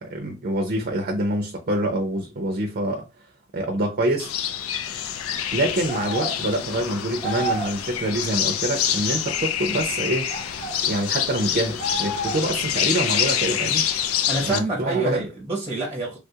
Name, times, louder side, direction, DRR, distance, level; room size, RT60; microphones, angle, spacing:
voice 1, 0.0-3.1 3.5-4.3 5.5-10.3 10.8-13.8 14.4-15.3, right 1 dB, 45° right, 0.5 m, -26 dB
sound 1, 4.2-14.6, left 9 dB, 85° left, 0.4 m, -26 dB
sound 2, 5.9-6.4 7.2-7.8 10.3-10.8 11.8-12.6, right 1 dB, 35° left, 0.9 m, -30 dB
voice 2, 14.3-16.2, right 2 dB, 10° right, 0.7 m, -26 dB
3.4 x 2.3 x 2.7 m
head